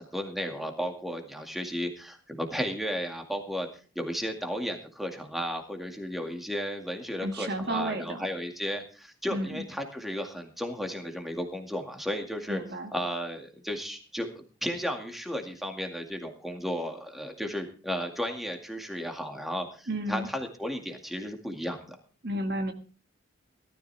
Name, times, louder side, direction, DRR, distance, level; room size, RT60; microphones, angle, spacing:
voice 1, 0.0-3.7 4.0-12.6 12.9-14.3 14.6-22.0, equal, ahead, 3 dB, 2.1 m, -34 dB
voice 2, 7.2-8.3 9.3-9.6 12.5-12.9 19.9-20.3 22.2-22.7, right 1 dB, 55° right, 5 dB, 1.8 m, -32 dB
18.5 x 13.0 x 3.4 m, 0.38 s
head